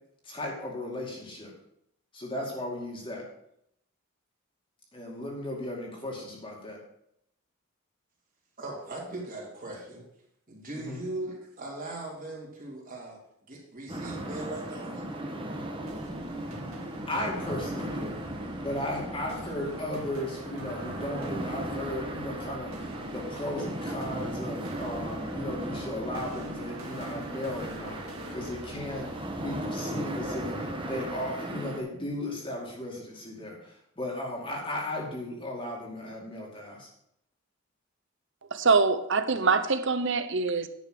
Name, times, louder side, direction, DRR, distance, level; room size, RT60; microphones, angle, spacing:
voice 1, 0.2-1.5 2.1-3.2 4.9-6.8 10.8-11.0 17.1-18.2 18.6-36.9, left 1 dB, 25° left, 2.2 m, -36 dB
voice 2, 8.6-10.1 10.5-13.2 13.5-15.0, right 2 dB, 40° right, 3.1 m, -39 dB
sound 1, 13.9-31.8, right 1 dB, 25° right, 1.3 m, -36 dB
sound 2, 15.9-29.6, right 1 dB, 80° right, 2.2 m, -45 dB
voice 3, 38.5-40.7, right 4 dB, 60° right, 0.8 m, -24 dB
10.0 x 6.0 x 6.2 m
head